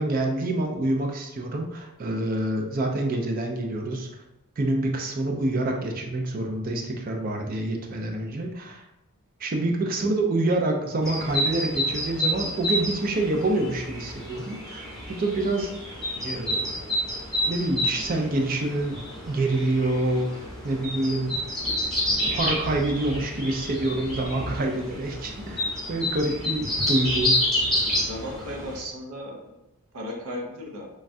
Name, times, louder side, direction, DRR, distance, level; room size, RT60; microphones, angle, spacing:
voice 1, 0.0-4.1 4.6-8.8 9.4-15.7 16.2-16.7 17.4-19.0 19.2-21.4 22.3-27.4, right 2 dB, 40° right, 2 dB, 0.4 m, -27 dB
sound 1, 11.0-28.8, left 1 dB, ahead, 0.8 m, -29 dB
voice 2, 27.9-29.6 29.9-30.9, equal, 75° right, 0 dB, 0.6 m, -36 dB
3.1 x 2.3 x 2.5 m, 0.90 s
head